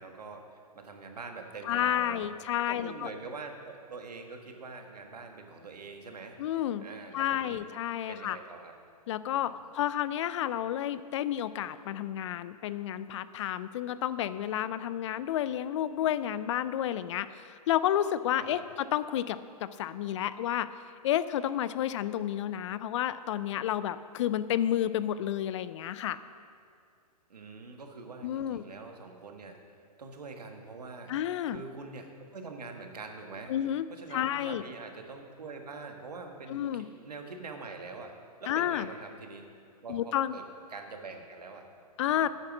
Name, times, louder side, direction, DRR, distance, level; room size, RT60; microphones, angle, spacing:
voice 1, 0.0-2.3 2.6-6.4 6.8-7.6 8.1-8.7 9.4-9.7 18.4-18.6 27.3-29.6 30.0-31.1 31.5-33.5 33.9-38.1 38.4-39.4 39.8-40.4 40.7-41.7 42.0-42.3, right 4 dB, 80° right, 4 dB, 1.5 m, -44 dB
voice 2, 1.6-3.1 6.4-6.9 7.1-8.4 9.1-20.7 21.0-26.2 28.2-28.6 31.1-31.6 33.5-33.9 34.1-34.6 36.5-36.9 38.5-38.9 39.9-40.4 42.0-42.3, left 11 dB, 50° left, 15 dB, 0.4 m, -31 dB
9.5 x 9.0 x 6.0 m, 2.3 s
hypercardioid pair, 115°, 20 cm